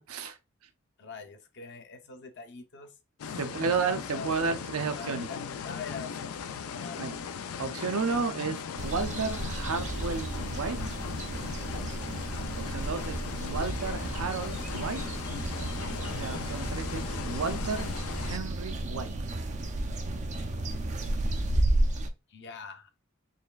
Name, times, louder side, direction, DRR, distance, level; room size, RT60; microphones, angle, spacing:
voice 1, 1.0-2.9 3.3-3.8 4.1-7.0 22.3-22.9, left 4 dB, 55° left, 0.7 m, -44 dB
sound 1, 3.2-18.4, left 7 dB, 85° left, 0.4 m, -38 dB
voice 2, 3.4-5.3 7.0-7.2 7.6-10.8 12.6-15.0 16.1-17.9 18.2-19.1, right 5 dB, 85° right, 0.5 m, -32 dB
sound 2, 8.8-22.1, right 1 dB, 35° right, 0.4 m, -32 dB
4.1 x 3.2 x 2.3 m
head